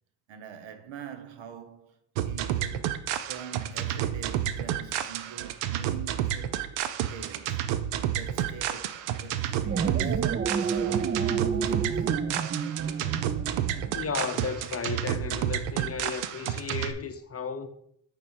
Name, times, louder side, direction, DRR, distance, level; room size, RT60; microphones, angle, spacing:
voice 1, 0.3-3.0 3.3-6.6 7.1-7.7 8.1-10.3 10.8-12.3, right 8 dB, 65° right, 0.9 m, -44 dB
sound 1, 2.2-16.9, right 11 dB, 85° right, 0.6 m, -30 dB
sound 2, 9.5-14.1, right 6 dB, 25° right, 0.4 m, -30 dB
voice 2, 13.9-17.7, left 5 dB, 30° left, 0.6 m, -34 dB
8.5 x 3.3 x 4.4 m
supercardioid pair, 65°, 48 cm